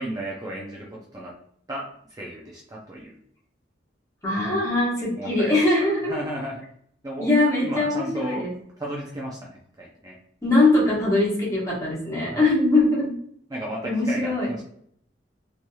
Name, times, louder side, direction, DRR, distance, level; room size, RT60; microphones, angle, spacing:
voice 1, 0.0-1.3 1.7-3.1 5.2-6.6 7.0-7.3 7.6-8.5 8.8-10.2 12.3-12.5 13.5-14.6, right 1 dB, 20° right, -3 dB, 0.4 m, -34 dB
voice 2, 4.2-6.1 7.2-8.5 10.4-13.1 13.8-14.5, left 2 dB, 15° left, -6 dB, 1.0 m, -21 dB
3.1 x 2.7 x 2.2 m, 0.65 s
head